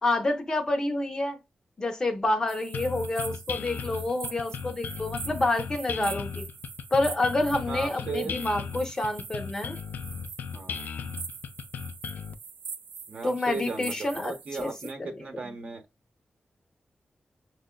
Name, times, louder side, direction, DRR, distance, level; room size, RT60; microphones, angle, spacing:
voice 1, 0.0-1.4 1.8-6.4 6.9-9.8 13.2-14.7 15.0-15.1 15.6-15.7, left 2 dB, 25° left, 0.6 m, -28 dB
sound 1, 2.5-14.9, right 6 dB, 85° right, 0.5 m, -43 dB
sound 2, 2.7-12.3, left 6 dB, 85° left, 0.3 m, -37 dB
voice 2, 7.7-8.4 10.5-10.9 13.1-15.8, right 4 dB, 55° right, 0.8 m, -36 dB
5.9 x 2.1 x 2.2 m
wide cardioid pair, 170°, 3 cm